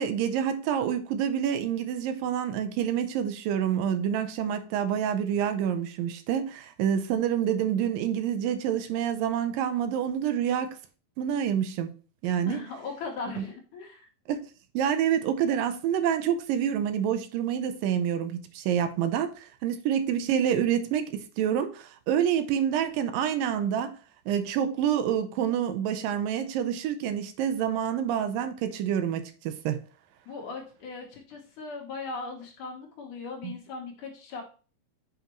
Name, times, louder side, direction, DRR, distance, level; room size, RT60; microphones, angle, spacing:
voice 1, 0.0-10.8 11.2-11.9 12.2-12.6 13.4-13.5 14.3-14.4 14.7-23.9 24.3-29.8 33.4-33.5, right 9 dB, 75° right, 2.3 m, -27 dB
voice 2, 12.4-14.1 30.3-34.4, left 4 dB, 65° left, 2.6 m, -38 dB
7.6 x 5.1 x 3.0 m
omnidirectional pair, 4.2 m